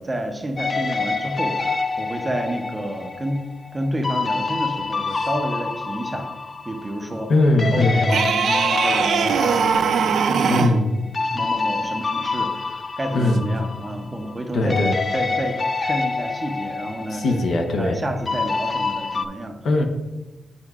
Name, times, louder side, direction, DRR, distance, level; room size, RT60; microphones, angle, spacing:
voice 1, 0.0-3.4 3.7-6.3 6.7-7.3 7.7-10.7 11.2-14.8 15.1-17.3 17.8-19.6, right 1 dB, 20° right, 4 dB, 0.7 m, -29 dB
sound 1, 0.6-7.3 7.6-14.4 14.7-19.3, left 4 dB, 30° left, 0.3 m, -27 dB
voice 2, 7.3-8.0 10.5-10.9 13.1-13.4 14.5-15.0 17.1-18.0 19.6-19.8, left 2 dB, 65° left, 4 dB, 0.8 m, -19 dB
sound 2, 8.1-10.8 13.3-13.4, right 6 dB, 70° right, 0.4 m, -21 dB
9.8 x 4.4 x 2.4 m, 1.1 s
wide cardioid pair, 135°, 0 cm